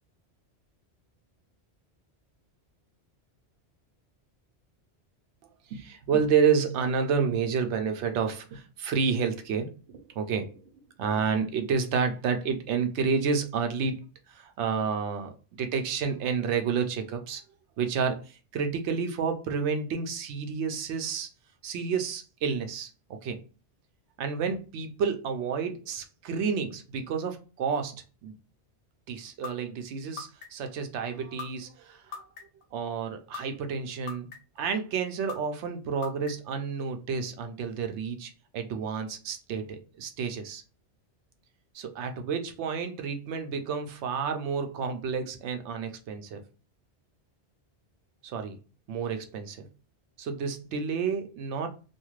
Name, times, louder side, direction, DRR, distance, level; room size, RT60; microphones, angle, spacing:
voice 1, 5.7-10.6 11.0-14.0 14.3-17.4 17.8-21.3 21.6-23.4 24.2-28.3 29.1-32.2 32.7-40.6 41.7-46.4 48.2-48.6 48.9-49.7 50.2-51.7, right 6 dB, 90° right, 0.9 m, -30 dB
sound 1, 29.4-29.5 30.2-30.7 31.4-31.5 32.1-32.6 33.3-33.4 34.1-34.6 35.3-35.4 36.0-36.5, left 6 dB, 75° left, 0.9 m, -38 dB
2.5 x 2.3 x 3.0 m
omnidirectional pair, 1.1 m